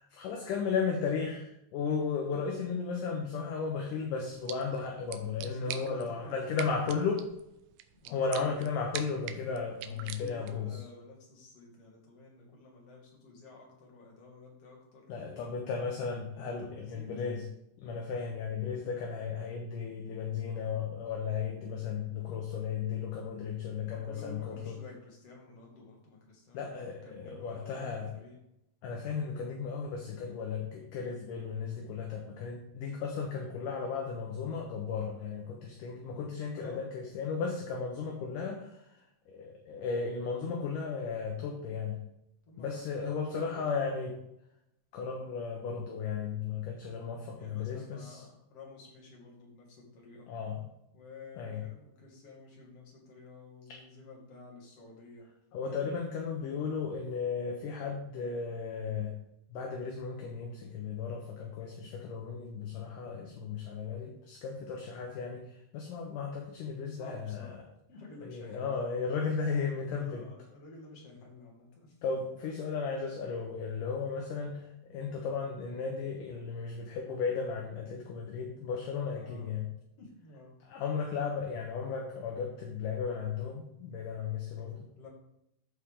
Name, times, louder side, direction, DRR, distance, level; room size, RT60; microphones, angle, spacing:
voice 1, 0.0-7.2 8.1-10.8 15.1-17.4 17.8-24.8 26.5-28.1 28.8-42.0 42.6-44.2 44.9-48.2 50.3-50.6 51.4-51.6 55.5-59.1 59.5-67.5 68.2-70.2 72.0-79.7 80.7-84.9, left 5 dB, 70° left, 1 dB, 2.2 m, -35 dB
sound 1, 4.2-10.7, right 11 dB, 85° right, 2.1 m, -45 dB
voice 2, 5.4-7.1 8.0-8.6 9.8-15.1 15.4-15.5 16.3-17.1 23.8-28.4 36.5-36.9 42.5-44.0 47.3-50.3 50.9-56.0 66.9-67.6 67.9-68.7 69.9-72.0 79.2-79.5 80.0-80.5 85.0-85.1, left 3 dB, 45° left, -3 dB, 2.8 m, -51 dB
13.5 x 4.6 x 3.7 m, 0.81 s
omnidirectional pair, 4.7 m